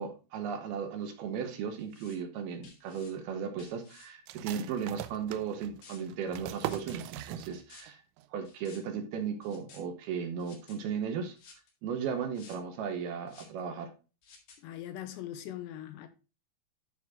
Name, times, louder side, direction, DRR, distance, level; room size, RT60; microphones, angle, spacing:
voice 1, 0.0-8.0 8.3-11.4 11.8-13.9, right 7 dB, 70° right, 2.5 m, -36 dB
sound 1, 1.8-2.2 2.6-3.1 3.6-4.1 5.8-6.0 6.6-7.0 7.5-7.8 8.4-8.8 9.4-9.8 10.4-10.8 11.4-11.7 12.3-12.6 13.3-13.6 14.2-14.6, left 5 dB, 55° left, 3.3 m, -54 dB
sound 2, 4.3-7.9 8.2-8.3 8.7-9.2, right 14 dB, 90° right, 3.0 m, -41 dB
voice 2, 14.6-16.1, left 12 dB, 80° left, 2.9 m, -41 dB
11.5 x 4.5 x 3.6 m
omnidirectional pair, 5.2 m